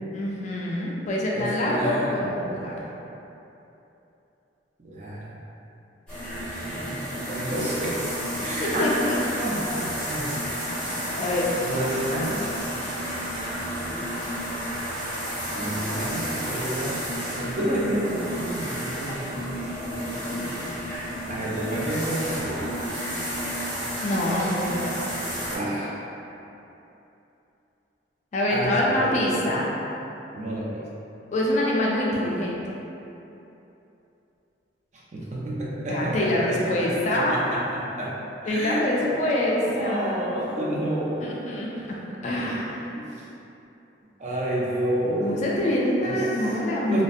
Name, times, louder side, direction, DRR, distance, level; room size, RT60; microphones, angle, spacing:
voice 1, 0.1-2.9 8.6-9.4 11.2-11.5 24.0-25.2 28.3-29.7 31.3-32.7 35.9-37.4 38.5-40.2 41.2-41.9 42.2-42.9 45.1-47.0, left 1 dB, 40° left, -4 dB, 0.3 m, -25 dB
voice 2, 1.3-2.8 4.8-5.3 7.2-8.0 8.4-10.3 11.6-12.5 15.5-19.6 21.3-22.7 25.5-26.0 28.5-29.3 30.3-30.8 35.1-38.1 38.4-41.4 42.3-42.7 43.0-43.1 44.2-45.4 46.0-46.2 46.8-47.0, right 1 dB, 40° right, -6 dB, 0.4 m, -30 dB
sound 1, 6.1-25.6, equal, 5° left, 0.8 m, -31 dB
2.6 x 2.1 x 2.4 m, 2.9 s
head